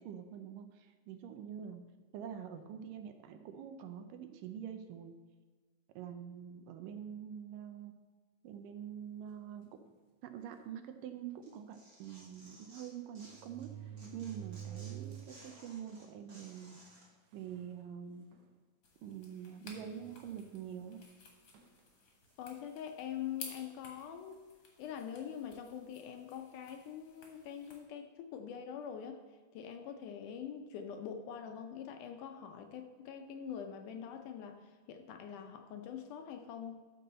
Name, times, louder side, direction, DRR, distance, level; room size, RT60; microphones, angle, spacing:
voice 1, 0.0-1.9 2.1-5.2 5.9-7.9 8.4-9.8 10.2-16.8 17.3-18.3 19.0-21.1, right 8 dB, 80° right, 8 dB, 2.2 m, -46 dB
sound 1, 9.6-9.9 10.6-10.7 11.0-11.1 12.4-12.5 13.2-15.5 15.9-16.0 16.9-17.0 17.3-17.7 18.3-18.5 19.7-20.6 21.5-21.8, right 10 dB, 60° right, 2.0 m, -48 dB
Tearing, 11.4-13.7 14.0-17.1, right 1 dB, 30° right, 2.0 m, -58 dB
sound 2, 18.8-27.8, left 4 dB, 50° left, 2.1 m, -55 dB
voice 2, 22.4-24.4 24.8-29.2 29.5-36.8, left 8 dB, 75° left, 5 dB, 2.0 m, -44 dB
13.5 x 5.5 x 4.2 m, 1.4 s
omnidirectional pair, 4.0 m